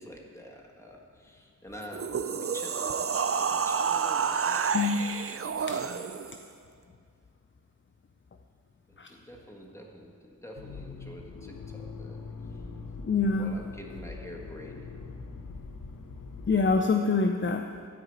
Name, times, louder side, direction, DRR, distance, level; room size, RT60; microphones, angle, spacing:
voice 1, 0.0-4.8 5.2-5.9 8.9-12.2 12.5-12.6 13.4-14.9, equal, 10° left, -1 dB, 1.6 m, -47 dB
sound 1, 1.8-6.4, right 6 dB, 45° right, 0.5 m, -29 dB
Accelerating revving vroom, 10.6-16.8, left 4 dB, 80° left, 0.8 m, -43 dB
voice 2, 13.0-13.5 16.5-17.7, left 4 dB, 40° left, 5 dB, 0.5 m, -25 dB
13.0 x 4.8 x 7.9 m, 2.3 s
wide cardioid pair, 75°, 32 cm